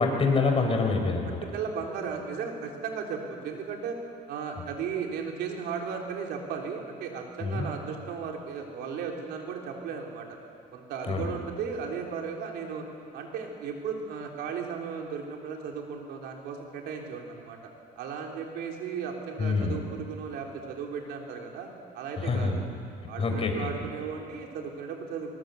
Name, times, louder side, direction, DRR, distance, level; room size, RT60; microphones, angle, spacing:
voice 1, 0.0-1.4 7.4-7.7 11.1-11.3 19.4-19.8 22.2-22.6 23.2-23.7, left 4 dB, 35° left, 3 dB, 4.1 m, -26 dB
voice 2, 1.4-4.0 4.3-10.3 10.7-12.8 13.1-17.6 18.0-21.7 21.9-22.5 23.1-25.3, right 6 dB, 80° right, 1 dB, 3.5 m, -35 dB
21.5 x 19.5 x 8.0 m, 2.4 s
cardioid pair, 110°, 17 cm